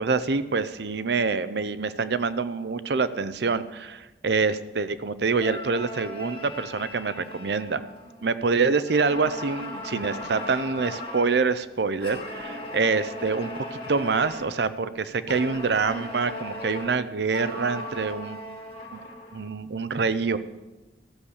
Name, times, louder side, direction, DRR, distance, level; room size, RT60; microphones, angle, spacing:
voice 1, 0.0-7.8 8.2-18.4 18.9-19.0 19.3-20.4, right 4 dB, 75° right, 14 dB, 0.6 m, -26 dB
sound 1, 5.4-8.4 8.9-11.5 12.0-14.6 15.3-19.5, left 1 dB, 30° left, 1.5 m, -38 dB
14.5 x 7.1 x 6.5 m, 1.1 s
head